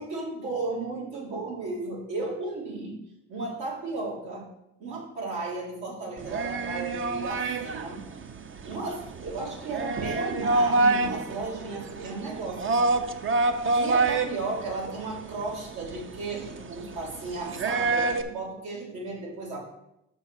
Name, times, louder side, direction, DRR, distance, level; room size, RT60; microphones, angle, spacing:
voice 1, 0.0-3.0 3.3-4.5 4.8-8.0 8.6-12.9 13.7-19.6, right 3 dB, 85° right, -4 dB, 2.9 m, -34 dB
sound 1, 6.2-18.2, right 3 dB, 40° right, 0.6 m, -28 dB
5.6 x 5.4 x 6.3 m, 0.83 s
cardioid pair, 90°, 30 cm